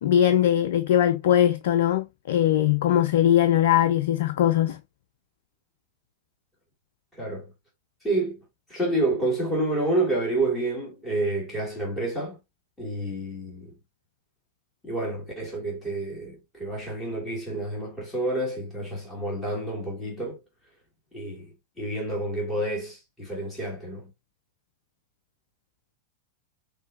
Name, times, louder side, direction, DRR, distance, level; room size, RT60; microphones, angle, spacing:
voice 1, 0.0-4.8, left 11 dB, 55° left, 0.3 m, -21 dB
voice 2, 7.2-7.5 8.0-8.4 8.7-12.4 12.8-13.7 14.8-20.4 21.1-21.5 21.8-24.1, right 2 dB, 10° left, 2.7 m, -29 dB
5.4 x 3.1 x 2.7 m
figure-of-eight pair, 90°, 0 cm